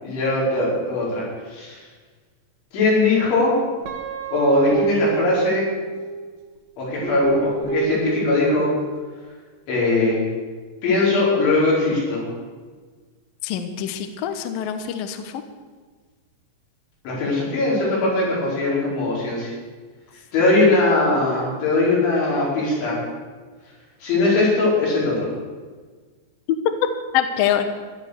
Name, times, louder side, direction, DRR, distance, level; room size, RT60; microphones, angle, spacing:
voice 1, 0.0-1.2 1.5-1.8 2.7-3.5 4.3-5.7 6.8-8.7 9.7-10.3 10.8-12.3 17.1-19.5 20.3-23.0 24.0-25.3, left 2 dB, 90° left, -5 dB, 7.6 m, -20 dB
Guitar, 3.9-6.3 7.0-9.0, right 5 dB, 75° right, 3.9 m, -27 dB
voice 2, 13.4-15.3 27.1-27.7, left 10 dB, 70° left, 7 dB, 2.4 m, -24 dB
15.5 x 12.0 x 6.8 m, 1.4 s
omnidirectional pair, 5.2 m